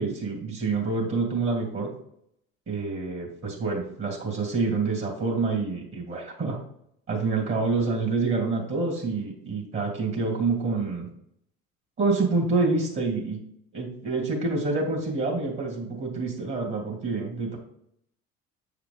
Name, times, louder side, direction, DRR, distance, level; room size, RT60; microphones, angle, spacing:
voice 1, 0.0-1.9 2.7-6.6 7.1-11.1 12.0-13.4 13.7-17.6, right 3 dB, 40° right, 0 dB, 2.6 m, -27 dB
7.7 x 4.8 x 3.8 m, 0.71 s
supercardioid pair, 80°, 29 cm